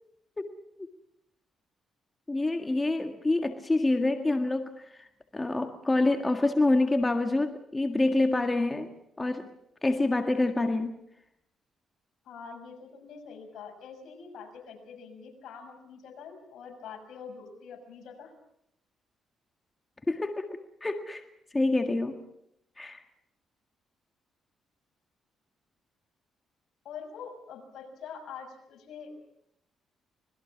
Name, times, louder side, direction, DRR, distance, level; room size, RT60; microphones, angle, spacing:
voice 1, 2.3-5.1 5.3-8.9 9.2-9.5 9.8-10.9 20.1-21.2 21.5-22.2 22.8-23.0, left 2 dB, 20° left, 5 dB, 1.8 m, -27 dB
voice 2, 12.2-18.3 26.8-29.1, left 6 dB, 70° left, 4 dB, 6.3 m, -45 dB
26.0 x 21.0 x 6.0 m, 0.78 s
cardioid pair, 90°, 0 cm